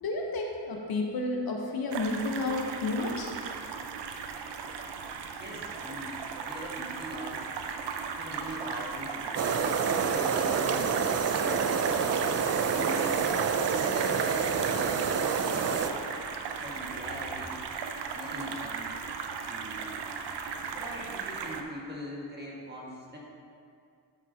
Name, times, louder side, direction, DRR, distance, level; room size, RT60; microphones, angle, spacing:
voice 1, 0.0-3.3 8.5-8.6, left 2 dB, 60° left, 0 dB, 1.1 m, -31 dB
sound 1, 1.9-21.6, right 5 dB, 75° right, 0.7 m, -36 dB
voice 2, 5.4-7.5 8.2-9.4 9.9-11.7 12.1-13.2 13.7-15.1 15.5-16.0 16.6-17.6 18.2-18.9 19.5-19.9 20.6-23.2, equal, 25° right, -4 dB, 1.9 m, -41 dB
sound 2, 9.4-15.9, right 6 dB, 40° right, 0.4 m, -28 dB
12.5 x 5.9 x 2.9 m, 2.4 s
cardioid pair, 105°, 41 cm